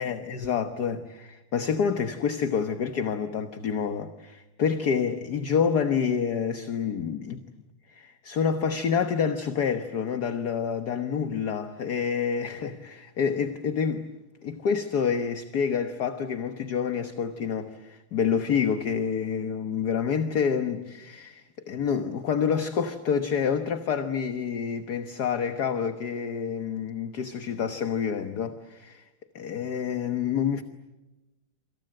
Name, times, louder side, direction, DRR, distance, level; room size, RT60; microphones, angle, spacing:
voice 1, 0.0-7.4 7.9-14.1 14.4-29.0 29.3-30.6, left 7 dB, 50° left, 1.6 m, -28 dB
27.5 x 26.0 x 7.8 m
omnidirectional pair, 2.4 m